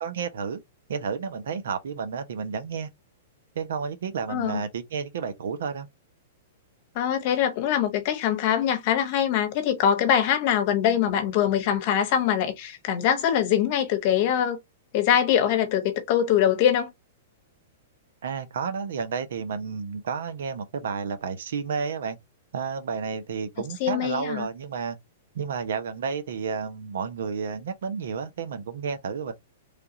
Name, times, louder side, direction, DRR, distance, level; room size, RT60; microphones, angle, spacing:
voice 1, 0.0-0.6 0.9-2.9 3.5-5.9 18.2-22.2 22.5-25.0 25.3-29.3, right 6 dB, 75° right, 0.8 m, -31 dB
voice 2, 4.3-4.6 6.9-14.6 14.9-16.9 23.8-24.5, left 9 dB, 45° left, 1.0 m, -23 dB
3.4 x 2.4 x 2.7 m
hypercardioid pair, 145°, 0 cm